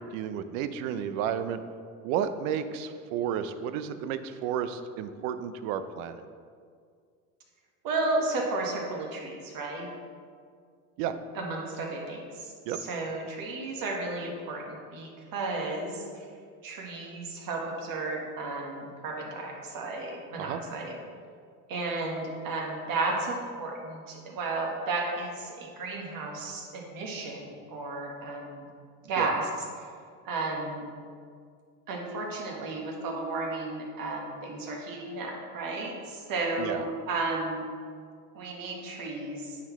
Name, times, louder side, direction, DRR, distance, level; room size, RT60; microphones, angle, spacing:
voice 1, 0.0-1.6 2.0-6.2 11.0-11.1 12.7-12.8 20.4-20.6 29.2-29.3 36.6-36.8, right 8 dB, 65° right, 11 dB, 0.6 m, -32 dB
voice 2, 7.8-9.9 11.3-12.5 12.8-16.0 16.6-21.0 21.7-28.6 29.1-29.5 30.2-30.8 31.9-37.6 38.3-39.6, right 3 dB, 50° right, 0 dB, 1.6 m, -33 dB
9.4 x 4.1 x 3.1 m, 2.1 s
hypercardioid pair, 90°, 44 cm